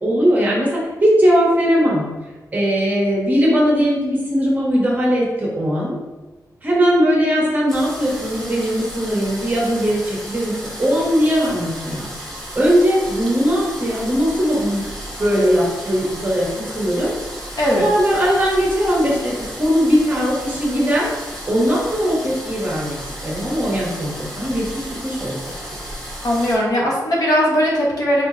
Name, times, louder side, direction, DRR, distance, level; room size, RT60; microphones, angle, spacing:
voice 1, 0.0-2.1 2.5-6.0 6.6-12.1 12.6-14.9 15.2-17.1 17.8-21.1 21.5-23.0 23.2-25.4, equal, 25° right, -4 dB, 1.0 m, -19 dB
sound 1, 7.7-26.6, equal, 5° left, 1.1 m, -33 dB
voice 2, 17.6-17.9 26.2-28.3, equal, 65° left, -3 dB, 1.0 m, -18 dB
4.0 x 3.3 x 2.7 m, 1.2 s
wide cardioid pair, 145°, 7 cm